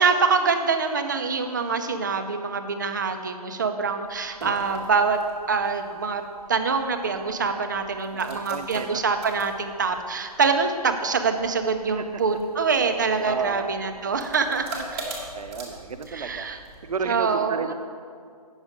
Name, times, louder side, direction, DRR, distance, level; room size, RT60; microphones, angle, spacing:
voice 1, 0.0-5.2 5.5-6.2 6.5-15.2 16.1-16.6 17.0-17.7, right 5 dB, 30° right, 7 dB, 0.5 m, -25 dB
sound 1, 4.0-17.1, right 2 dB, 10° right, 0.9 m, -43 dB
voice 2, 8.1-9.0 12.0-12.1 13.3-13.7 15.3-16.5 16.8-17.7, right 5 dB, 65° right, 9 dB, 0.7 m, -32 dB
8.6 x 6.3 x 5.1 m, 2.2 s
hypercardioid pair, 170°, 20 cm